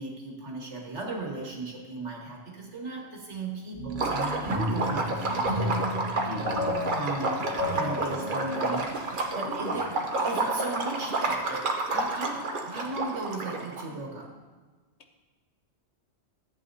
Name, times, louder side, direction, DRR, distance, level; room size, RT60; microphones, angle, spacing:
voice 1, 0.0-6.3 6.9-9.9 10.2-14.4, right 2 dB, 85° right, -1 dB, 2.0 m, -37 dB
sound 1, 3.8-9.4, left 1 dB, 25° right, 2.6 m, -33 dB
Liquid, 3.9-13.8, right 2 dB, 50° right, 1.0 m, -30 dB
voice 2, 6.2-6.7 7.8-8.2 9.4-9.8, left 3 dB, 85° left, 4 dB, 1.3 m, -40 dB
14.0 x 8.2 x 2.8 m, 1.3 s
omnidirectional pair, 1.2 m